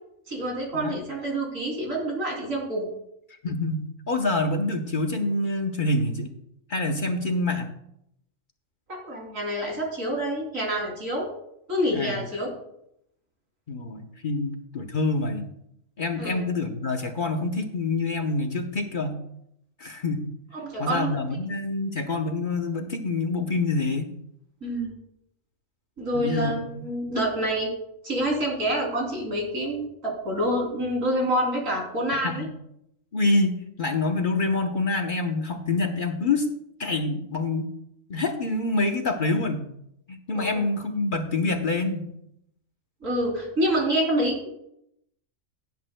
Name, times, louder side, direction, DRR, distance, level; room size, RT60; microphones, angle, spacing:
voice 1, 0.3-2.9 8.9-11.3 11.7-12.5 16.2-16.4 20.5-21.1 24.6-24.9 26.0-27.7 28.0-32.5 40.3-40.6 43.0-44.5, equal, 80° right, -1 dB, 3.6 m, -27 dB
voice 2, 3.4-6.3 6.7-7.7 11.9-12.2 13.7-15.5 16.0-19.2 19.8-20.3 20.8-24.1 26.1-26.9 32.2-32.4 33.1-36.5 36.8-37.7 38.1-39.7 40.1-42.1, left 2 dB, 45° left, 4 dB, 1.0 m, -26 dB
17.0 x 10.0 x 2.2 m, 0.78 s
omnidirectional pair, 1.4 m